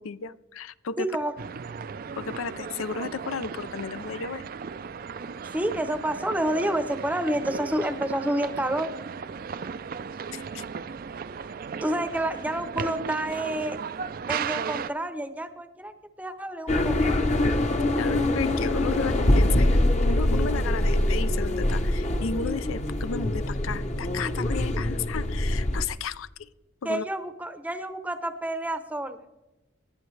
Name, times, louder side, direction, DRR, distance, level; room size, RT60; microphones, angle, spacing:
voice 1, 0.0-1.1 2.2-4.4 10.3-10.6 18.0-19.8 20.1-26.5 26.8-27.0, left 6 dB, 85° left, 15 dB, 0.5 m, -33 dB
voice 2, 1.0-1.3 5.5-8.9 11.8-13.8 14.3-17.3 26.8-29.2, right 1 dB, 5° right, 10 dB, 0.7 m, -29 dB
sound 1, 1.4-14.9, right 6 dB, 45° right, 0.3 m, -36 dB
sound 2, 16.7-25.9, left 1 dB, 35° left, 0.8 m, -24 dB
19.5 x 11.0 x 3.2 m, 1.0 s
head